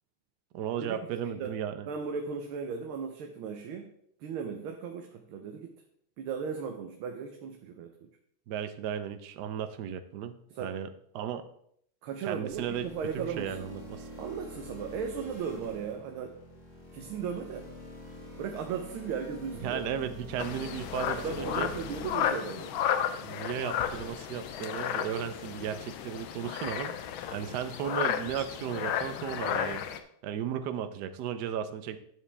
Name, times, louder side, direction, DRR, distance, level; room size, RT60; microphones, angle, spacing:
voice 1, 0.5-1.9 8.5-10.3 10.6-10.9 11.1-11.4 12.3-12.9 13.1-14.1 19.6-21.7 23.2-26.9 27.3-29.8 30.2-32.0, right 9 dB, 65° right, 9 dB, 1.2 m, -35 dB
voice 2, 1.9-3.9 4.2-5.7 6.2-8.1 10.5-10.8 12.0-13.7 14.2-16.3 16.9-17.7 18.4-19.8 21.2-22.7 29.4-29.7, right 6 dB, 90° right, 4 dB, 1.7 m, -36 dB
sound 1, 12.5-22.3, left 1 dB, 45° left, 3.5 m, -46 dB
sound 2, 20.4-30.0, left 9 dB, 80° left, 1.5 m, -33 dB
11.5 x 7.2 x 3.4 m, 0.68 s
omnidirectional pair, 2.2 m